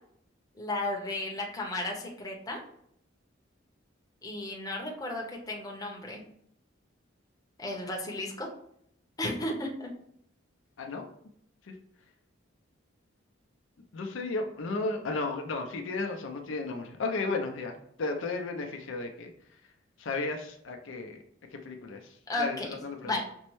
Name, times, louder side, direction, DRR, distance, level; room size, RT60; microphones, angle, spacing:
voice 1, 0.5-2.6 4.2-6.3 7.6-8.5 9.2-9.9 22.3-23.2, left 1 dB, 20° left, -1 dB, 0.7 m, -34 dB
voice 2, 13.9-19.3 20.0-21.2 21.5-22.0 22.4-22.6 22.8-23.2, left 3 dB, 70° left, 3 dB, 0.5 m, -34 dB
5.2 x 2.1 x 3.0 m, 0.69 s
head